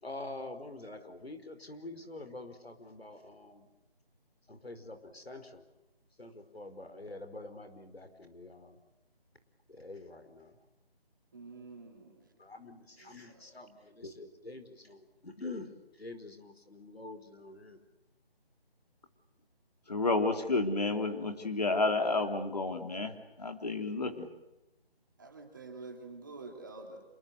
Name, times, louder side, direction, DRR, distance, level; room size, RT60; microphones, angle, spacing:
voice 1, 0.0-3.7 4.5-5.6 6.2-8.8 9.7-10.5 12.4-17.8, left 2 dB, 85° left, 8 dB, 4.9 m, -46 dB
voice 2, 11.3-12.3 13.0-13.4 25.2-27.1, right 3 dB, 20° right, 2 dB, 2.9 m, -48 dB
voice 3, 19.9-24.3, left 3 dB, 40° left, 6 dB, 3.3 m, -31 dB
28.0 x 24.5 x 8.1 m, 0.94 s
figure-of-eight pair, 175°, 30 cm